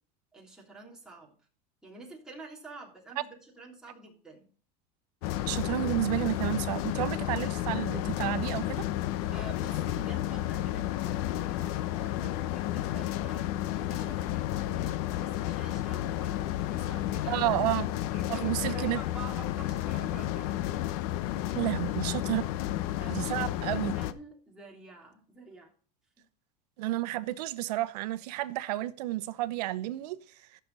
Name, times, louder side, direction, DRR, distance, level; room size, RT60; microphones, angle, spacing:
voice 1, 0.3-1.3 1.8-4.5 9.3-17.4 18.1-20.6 20.9-21.0 21.4-21.7 22.4-22.6 23.0-25.7, right 3 dB, 5° right, 3.3 m, -48 dB
sound 1, 5.2-24.1, left 14 dB, 65° left, 0.8 m, -32 dB
voice 2, 5.5-8.9 17.3-17.9 18.3-19.0 21.5-22.4 23.1-23.9 26.8-30.2, right 16 dB, 80° right, 0.9 m, -31 dB
15.0 x 6.8 x 4.0 m
supercardioid pair, 140°, 20 cm